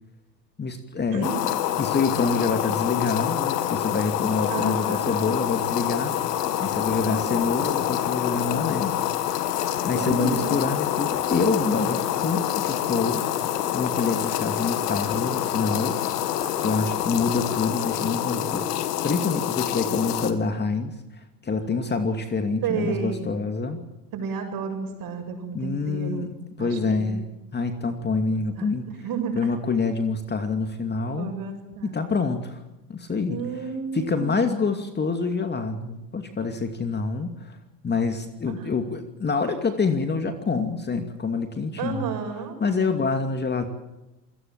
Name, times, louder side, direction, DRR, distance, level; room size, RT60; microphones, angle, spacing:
voice 1, 0.6-1.3 1.8-6.1 6.6-9.1 9.8-13.3 13.7-16.0 16.6-20.9 21.4-23.8 25.5-26.3 26.6-27.3 27.5-28.9 29.4-31.3 31.8-32.6 32.9-33.4 33.9-37.6 37.8-42.1 42.6-43.7, left 4 dB, 20° left, 6 dB, 2.6 m, -26 dB
voice 2, 1.1-1.6 4.5-5.0 7.0-7.2 9.9-10.6 16.4-16.7 22.6-23.3 24.1-26.3 26.6-27.2 28.2-28.7 29.0-29.5 31.2-32.0 33.3-34.5 38.6-38.7 41.8-42.6, right 6 dB, 45° right, 5 dB, 7.6 m, -32 dB
sound 1, 1.2-20.3, left 12 dB, 70° left, 2.3 m, -26 dB
27.5 x 18.5 x 7.6 m, 0.97 s
hypercardioid pair, 90°, 49 cm